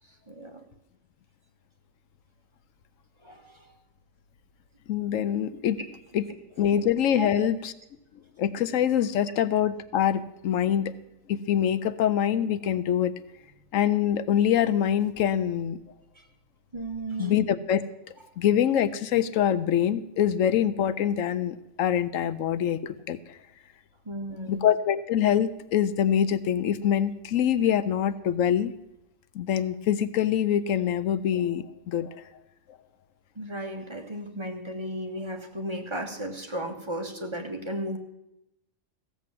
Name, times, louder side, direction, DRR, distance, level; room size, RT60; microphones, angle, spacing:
voice 1, 0.3-0.6 3.2-3.7 6.7-6.8 7.2-7.5 16.1-16.3 16.7-17.5 24.0-24.6 27.6-27.7 33.3-38.0, right 1 dB, 20° right, 2 dB, 1.5 m, -35 dB
voice 2, 4.9-5.8 6.1-6.3 6.6-7.7 8.4-10.9 11.3-13.1 13.7-15.8 17.2-17.8 18.4-23.4 24.5-28.7 29.3-32.1, left 9 dB, 80° left, 14 dB, 1.0 m, -24 dB
15.5 x 7.3 x 7.5 m, 0.87 s
omnidirectional pair, 1.4 m